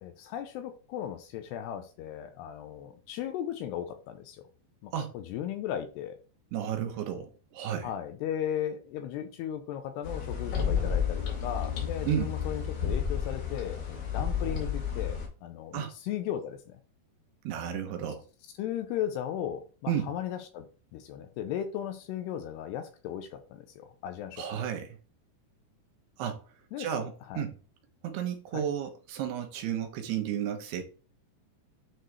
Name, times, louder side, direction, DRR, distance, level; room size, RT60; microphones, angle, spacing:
voice 1, 0.0-4.5 4.8-6.2 7.8-16.8 18.6-20.7 20.9-24.4 26.7-26.9 27.3-27.5 28.5-28.7, left 10 dB, 80° left, 2.6 m, -36 dB
voice 2, 6.5-7.9 12.1-12.3 15.7-15.9 17.4-18.2 19.9-20.1 24.4-25.0 26.2-26.4 26.8-27.5 28.0-30.8, right 9 dB, 75° right, 2.7 m, -32 dB
sound 1, 10.0-15.3, left 7 dB, 60° left, 3.5 m, -31 dB
9.9 x 4.6 x 3.3 m
omnidirectional pair, 5.2 m